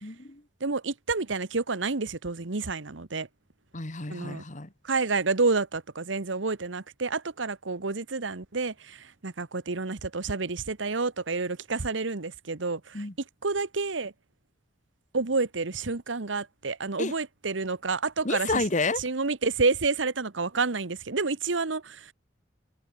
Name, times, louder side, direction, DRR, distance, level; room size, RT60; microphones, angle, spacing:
voice 1, 0.0-0.4 3.7-4.7 12.9-13.1 17.0-17.1 18.2-19.0, left 3 dB, 40° left, 1.8 m, -30 dB
voice 2, 0.6-3.3 4.1-4.4 4.8-13.0 13.4-14.1 15.1-18.6 19.0-22.1, right 4 dB, 85° right, 1.2 m, -29 dB
head